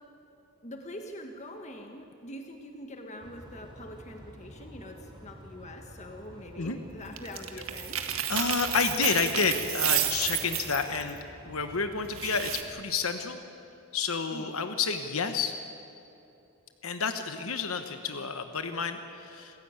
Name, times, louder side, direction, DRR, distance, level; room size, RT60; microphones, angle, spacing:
voice 1, 0.6-8.0 14.3-14.5, equal, 35° left, 4 dB, 1.6 m, -44 dB
sound 1, 3.2-12.7, equal, 20° right, 2.9 m, -49 dB
sound 2, 7.2-11.1 12.1-12.6, right 11 dB, 70° right, 1.8 m, -31 dB
voice 2, 8.3-11.2 11.4-13.4 13.9-15.5 16.8-19.6, left 5 dB, 75° left, 8 dB, 1.2 m, -30 dB
27.5 x 15.5 x 9.0 m, 2.7 s
head